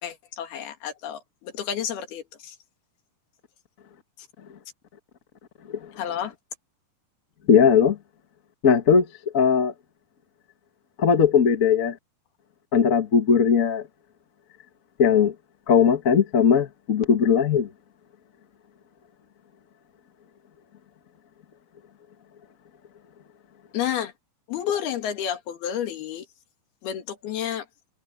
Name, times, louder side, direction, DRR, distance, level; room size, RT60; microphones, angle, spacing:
voice 1, 0.0-2.5 6.0-6.3 23.7-24.1 24.5-26.3 26.8-27.7, left 9 dB, 85° left, 4.1 m, -30 dB
voice 2, 7.5-8.0 8.6-9.1 9.3-9.7 11.0-12.0 12.7-13.8 15.0-15.3 15.7-17.7, left 7 dB, 65° left, 0.8 m, -19 dB
omnidirectional pair, 4.3 m